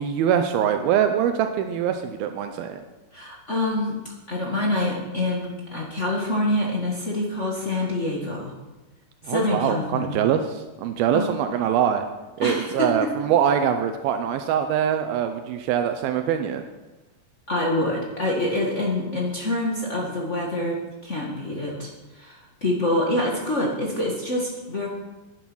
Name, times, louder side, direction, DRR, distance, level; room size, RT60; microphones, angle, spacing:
voice 1, 0.0-2.8 9.2-12.1 12.4-16.6, right 9 dB, 80° right, 7 dB, 2.5 m, -23 dB
voice 2, 3.1-4.0 4.3-8.5 9.2-10.1 11.1-11.2 12.4-12.9 17.5-20.8 21.0-24.9, left 1 dB, 55° left, -3 dB, 0.8 m, -26 dB
11.0 x 9.7 x 6.2 m, 1.1 s
omnidirectional pair, 4.3 m